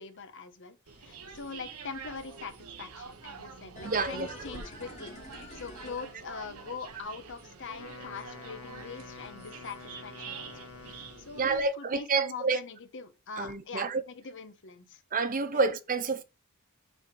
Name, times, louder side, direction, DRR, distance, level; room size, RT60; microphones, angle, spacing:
voice 1, 0.0-5.1 5.5-10.5 10.9-15.0 15.5-15.6, left 5 dB, 60° left, 1.0 m, -43 dB
sound 1, 0.9-11.7, right 5 dB, 80° right, 1.1 m, -47 dB
sound 2, 3.8-6.9 7.2-7.3, left 1 dB, 35° left, 2.4 m, -47 dB
voice 2, 3.8-4.3 11.4-12.6 13.4-14.0 15.1-16.2, right 4 dB, 40° right, 0.7 m, -28 dB
Wind instrument woodwind instrument, 7.6-11.5, left 3 dB, 85° left, 1.1 m, -47 dB
6.3 x 4.3 x 4.7 m
head